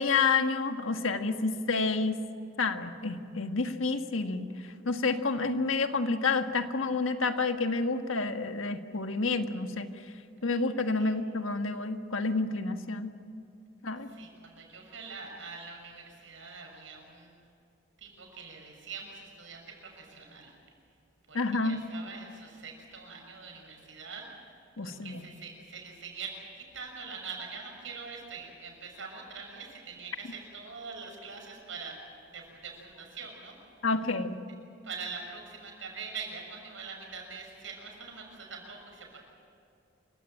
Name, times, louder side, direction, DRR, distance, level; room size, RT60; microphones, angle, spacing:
voice 1, 0.0-2.2 2.6-4.5 4.8-9.9 10.4-13.1 13.8-14.1 21.3-21.8 24.8-25.2 33.8-34.4, left 4 dB, 85° left, 7 dB, 1.5 m, -29 dB
voice 2, 14.1-17.3 18.0-20.5 21.3-24.3 24.8-32.0 32.3-33.5 34.8-39.2, right 5 dB, 75° right, 1 dB, 6.4 m, -44 dB
27.5 x 16.0 x 8.9 m, 2.6 s
head